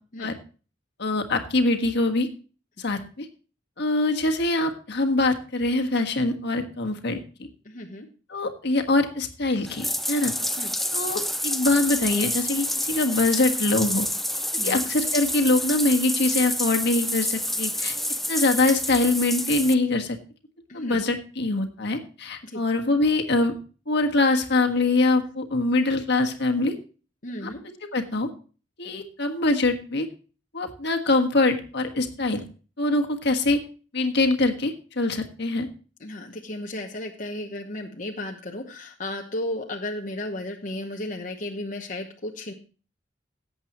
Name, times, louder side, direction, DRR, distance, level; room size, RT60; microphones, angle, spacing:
voice 1, 1.0-2.3 2.8-3.3 3.8-7.2 8.3-10.3 10.9-14.1 14.6-17.9 18.3-20.2 20.7-23.5 23.9-26.7 27.9-28.3 28.8-30.1 30.5-32.4 32.8-33.6 33.9-35.7, left 2 dB, 65° left, 5 dB, 1.5 m, -23 dB
voice 2, 7.6-8.1 10.6-10.7 14.6-14.8 20.7-21.0 22.4-22.6 27.2-27.6 36.0-42.5, left 1 dB, 45° left, 1 dB, 1.1 m, -34 dB
Bathtub (filling or washing), 9.7-19.7, left 1 dB, ahead, 0.5 m, -28 dB
17.5 x 8.0 x 3.0 m, 0.36 s
head